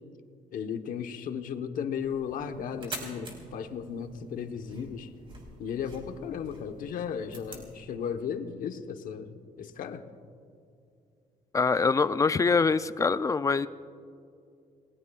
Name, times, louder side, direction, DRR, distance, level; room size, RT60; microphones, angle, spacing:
voice 1, 0.5-5.1 5.6-10.1, left 7 dB, 70° left, 7 dB, 1.1 m, -35 dB
sound 1, 2.0-7.8, right 2 dB, 35° right, 3.6 m, -46 dB
sound 2, 2.3-9.6, right 2 dB, 90° right, 2.2 m, -54 dB
voice 2, 11.5-13.7, left 4 dB, 20° left, 13 dB, 0.4 m, -24 dB
29.5 x 19.5 x 2.4 m, 2.5 s
cardioid pair, 135°, 14 cm